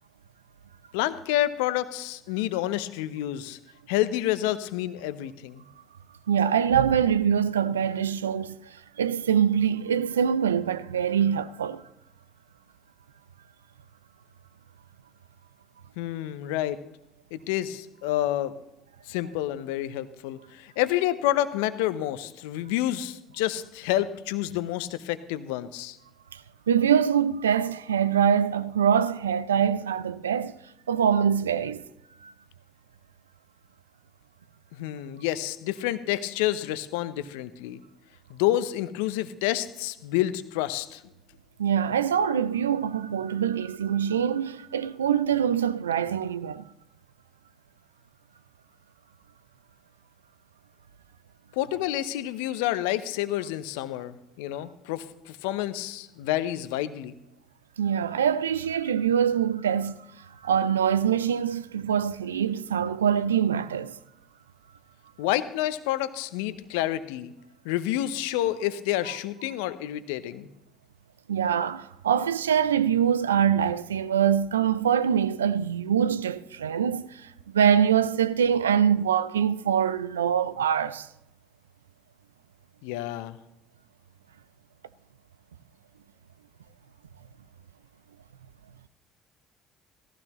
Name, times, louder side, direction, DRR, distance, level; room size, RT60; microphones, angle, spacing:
voice 1, 0.9-3.6 3.9-5.6 16.0-16.8 17.3-18.5 19.1-26.0 34.7-37.8 38.3-41.0 51.5-57.2 65.2-67.3 67.6-70.5 82.8-83.4, left 14 dB, 70° left, 0.8 m, -29 dB
voice 2, 6.3-11.8 26.3-26.4 26.7-30.5 30.9-31.8 32.2-32.3 41.6-46.6 57.8-60.0 60.4-64.0 71.3-81.1, right 8 dB, 85° right, 0.4 m, -24 dB
18.0 x 14.5 x 3.0 m
figure-of-eight pair, 55°, 0 cm